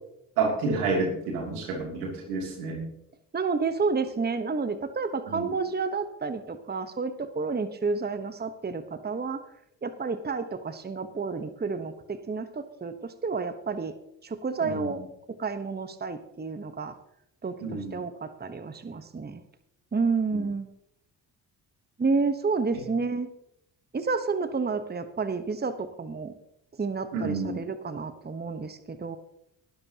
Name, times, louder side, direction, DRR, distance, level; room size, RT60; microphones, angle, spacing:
voice 1, 0.4-2.8 5.3-5.6 14.6-15.0 17.6-18.0 20.3-20.4 27.1-27.6, right 4 dB, 85° right, 0 dB, 2.9 m, -29 dB
voice 2, 3.3-9.4 9.8-13.9 14.2-15.0 15.4-16.9 17.4-19.4 19.9-20.7 22.0-23.3 23.9-26.3 26.8-29.2, right 4 dB, 20° right, 10 dB, 1.1 m, -30 dB
18.5 x 12.0 x 2.9 m, 0.81 s
hypercardioid pair, 45°, 47 cm